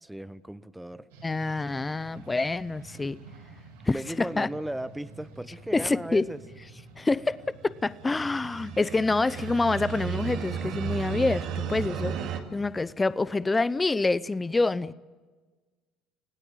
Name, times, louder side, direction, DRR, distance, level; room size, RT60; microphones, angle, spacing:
voice 1, 0.0-1.1 3.9-6.4, right 1 dB, 5° right, 1.0 m, -36 dB
sound 1, 1.1-8.8, right 3 dB, 90° right, 6.0 m, -49 dB
voice 2, 1.2-3.2 3.8-4.5 5.7-6.3 7.0-7.4 7.6-14.9, left 3 dB, 20° left, 0.6 m, -27 dB
sound 2, 7.9-12.4, right 8 dB, 70° right, 2.5 m, -34 dB
29.0 x 17.5 x 7.5 m
hypercardioid pair, 70°, 0 cm